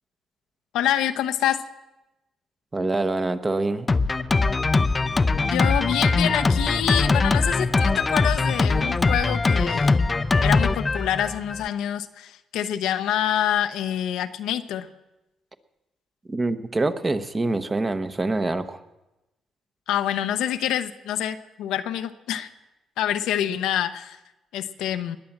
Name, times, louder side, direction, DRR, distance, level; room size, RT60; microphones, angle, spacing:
voice 1, 0.7-1.6 5.3-10.0 10.4-14.9 19.9-22.5 23.0-24.2 24.5-25.2, left 10 dB, 90° left, 8 dB, 0.8 m, -26 dB
voice 2, 2.7-3.9 16.3-18.8, right 2 dB, 25° right, 9 dB, 1.0 m, -25 dB
Drum kit, 3.9-11.7, left 3 dB, 25° left, 0.5 m, -21 dB
20.5 x 7.6 x 7.3 m, 0.99 s
cardioid pair, 90°, 0 cm